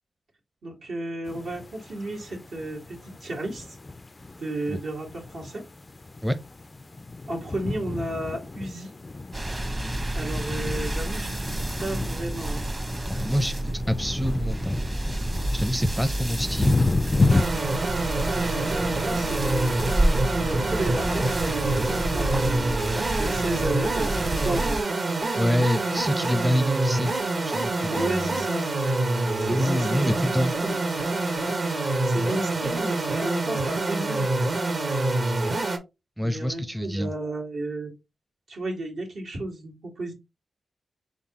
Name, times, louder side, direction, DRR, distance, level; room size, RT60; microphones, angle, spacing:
voice 1, 0.6-3.7 4.4-5.6 7.3-8.9 10.1-11.3 11.8-12.6 18.4-19.7 20.2-22.8 23.1-24.8 27.9-28.6 29.4-30.2 30.6-30.8 32.0-34.3 36.2-37.9 38.5-40.1, right 2 dB, 80° right, 2.1 m, -33 dB
sound 1, 1.3-17.4, left 3 dB, 35° left, 0.3 m, -31 dB
sound 2, 9.3-24.8, right 1 dB, 35° right, 1.0 m, -29 dB
voice 2, 13.1-14.8 15.5-16.8 25.4-27.1 27.5-28.4 29.4-30.5 36.2-37.1, equal, 10° right, 0.6 m, -26 dB
sound 3, 17.3-35.8, right 2 dB, 55° right, 1.2 m, -26 dB
3.9 x 3.7 x 2.9 m
cardioid pair, 55°, 0 cm